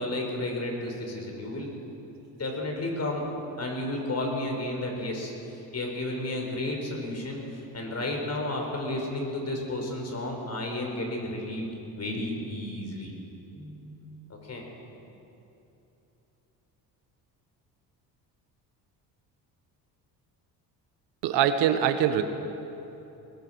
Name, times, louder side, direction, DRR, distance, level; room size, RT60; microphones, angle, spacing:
voice 1, 0.0-1.7 2.3-3.2 3.6-5.3 5.7-7.4 7.7-11.7 12.0-13.1 13.5-14.0 14.5-14.6, left 1 dB, 35° left, 1 dB, 6.4 m, -32 dB
voice 2, 21.2-22.2, right 9 dB, 80° right, 8 dB, 1.6 m, -23 dB
22.0 x 20.5 x 6.5 m, 3.0 s
supercardioid pair, 80°, 42 cm